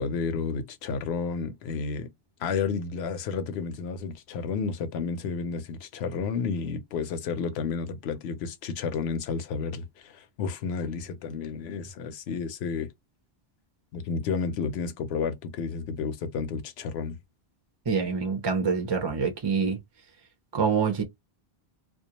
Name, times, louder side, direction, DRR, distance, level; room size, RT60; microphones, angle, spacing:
voice 1, 0.0-2.1 2.4-12.9 13.9-17.2, left 5 dB, 85° left, 0.8 m, -31 dB
voice 2, 17.9-19.8 20.5-21.0, right 5 dB, 35° right, 0.4 m, -26 dB
2.3 x 2.2 x 2.8 m
omnidirectional pair, 1.0 m